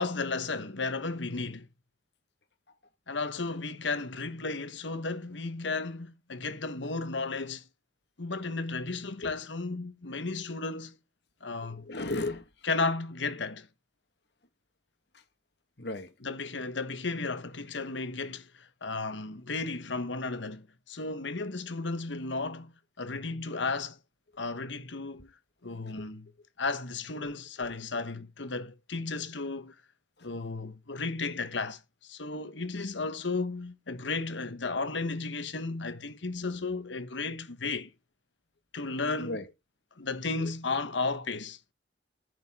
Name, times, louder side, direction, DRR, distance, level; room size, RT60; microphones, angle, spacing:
voice 1, 0.0-1.7 3.1-7.7 8.2-11.0 11.4-11.9 12.7-13.7 16.2-22.7 23.0-24.0 24.4-25.3 25.6-26.3 26.6-29.7 30.2-37.9 38.7-39.4 40.0-41.6, left 3 dB, 90° left, 1.3 m, -34 dB
voice 2, 11.7-12.7 15.1-15.2 15.8-16.1 17.7-17.8 25.8-26.1 27.2-27.7 30.2-30.3 39.2-39.5 40.4-40.5, left 2 dB, 65° left, 1.8 m, -37 dB
14.0 x 6.7 x 3.7 m
head